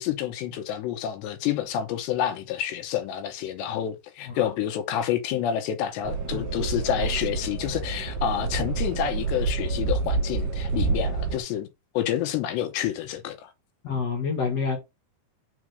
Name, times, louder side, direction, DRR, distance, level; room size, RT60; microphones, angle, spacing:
voice 1, 0.0-11.7 11.9-13.5, left 10 dB, 75° left, 3.0 m, -28 dB
sound 1, 6.1-11.4, right 4 dB, 60° right, 2.6 m, -28 dB
voice 2, 6.3-6.7 13.8-14.8, left 5 dB, 55° left, 1.9 m, -28 dB
6.4 x 4.2 x 6.2 m
omnidirectional pair, 5.2 m